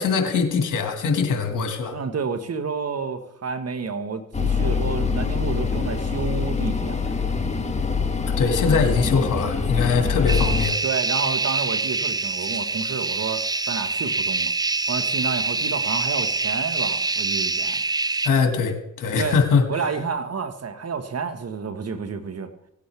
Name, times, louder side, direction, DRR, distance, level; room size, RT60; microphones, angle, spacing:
voice 1, 0.0-2.0 8.4-10.8 18.2-19.6, left 5 dB, 65° left, 5 dB, 2.1 m, -22 dB
voice 2, 1.9-7.4 10.8-14.5 14.9-17.8 19.1-19.4 19.7-22.5, right 5 dB, 45° right, 9 dB, 1.4 m, -30 dB
sound 1, 4.3-10.7, left 5 dB, 20° left, 1.6 m, -24 dB
sound 2, 10.3-18.3, right 3 dB, 10° right, 0.4 m, -25 dB
17.5 x 8.4 x 3.4 m, 0.81 s
supercardioid pair, 60°, 34 cm